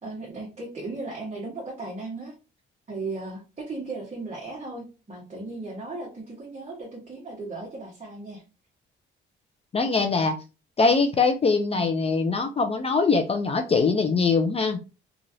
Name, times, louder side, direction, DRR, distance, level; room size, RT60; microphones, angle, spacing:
voice 1, 0.0-2.3 2.9-8.4 11.7-11.9, right 2 dB, 35° right, -4 dB, 1.3 m, -36 dB
voice 2, 9.7-10.4 10.8-14.8, left 4 dB, 30° left, 5 dB, 0.5 m, -22 dB
3.0 x 2.4 x 2.7 m, 0.32 s
cardioid pair, 90°, 20 cm